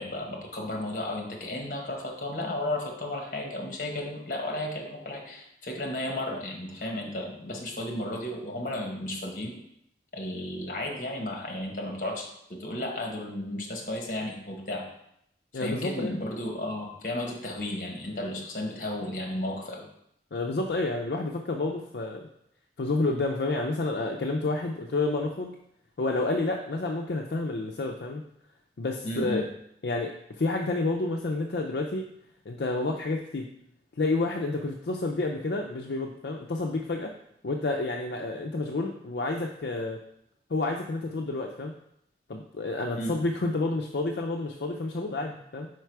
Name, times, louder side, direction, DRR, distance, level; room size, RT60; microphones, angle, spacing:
voice 1, 0.0-9.5 10.1-14.9 15.5-19.9 29.0-29.4 43.0-43.2, left 1 dB, 50° left, 1 dB, 1.2 m, -33 dB
voice 2, 15.5-16.2 20.3-22.3 22.8-25.5 26.0-28.2 28.8-29.5 29.8-32.0 32.5-33.5 34.0-37.1 37.4-40.0 40.5-41.7 42.3-45.7, left 2 dB, 65° left, 1 dB, 0.5 m, -29 dB
5.0 x 4.6 x 4.6 m, 0.76 s
head